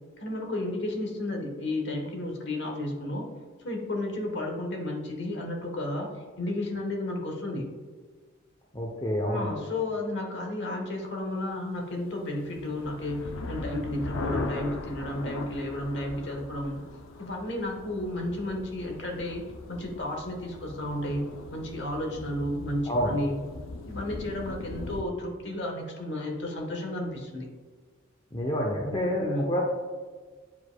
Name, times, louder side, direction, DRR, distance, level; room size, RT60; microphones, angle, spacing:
voice 1, 0.2-3.3 3.6-7.7 9.3-16.8 17.2-19.4 19.7-21.2 21.5-23.4 23.9-27.5 29.1-29.5, left 1 dB, 55° left, 1 dB, 1.2 m, -32 dB
voice 2, 8.7-9.5 22.9-23.1 28.3-29.6, equal, 20° left, -2 dB, 0.6 m, -28 dB
sound 1, 12.2-25.0, left 3 dB, 80° left, 0.5 m, -40 dB
9.5 x 4.8 x 2.2 m, 1.5 s
head